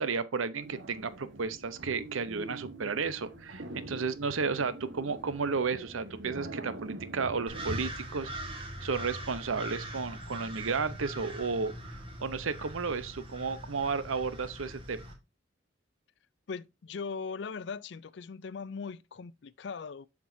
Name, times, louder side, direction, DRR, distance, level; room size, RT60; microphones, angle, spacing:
voice 1, 0.0-8.3 8.8-15.0, right 5 dB, 90° right, 0.7 m, -33 dB
sound 1, 0.6-7.9, right 1 dB, 65° right, 1.3 m, -43 dB
sound 2, 7.5-15.1, right 1 dB, 25° right, 1.5 m, -42 dB
voice 2, 16.5-20.1, left 5 dB, 60° left, 0.4 m, -39 dB
7.3 x 6.1 x 2.6 m
head